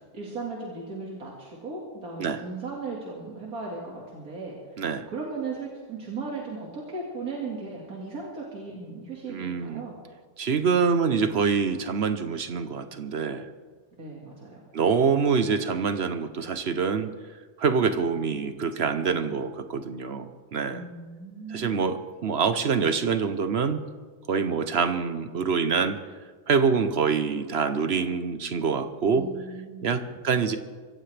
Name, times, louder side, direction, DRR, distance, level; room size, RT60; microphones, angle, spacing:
voice 1, 0.1-4.6 5.1-10.1 14.0-14.6 20.7-21.8 29.1-30.1, right 4 dB, 90° right, -3 dB, 2.5 m, -37 dB
voice 2, 9.3-9.8 10.4-13.5 14.7-17.1 17.6-20.8 21.5-23.8 24.3-26.0 26.5-29.3 29.8-30.6, right 5 dB, 50° right, 9 dB, 1.0 m, -25 dB
24.0 x 15.0 x 3.4 m, 1.5 s
omnidirectional pair, 1.5 m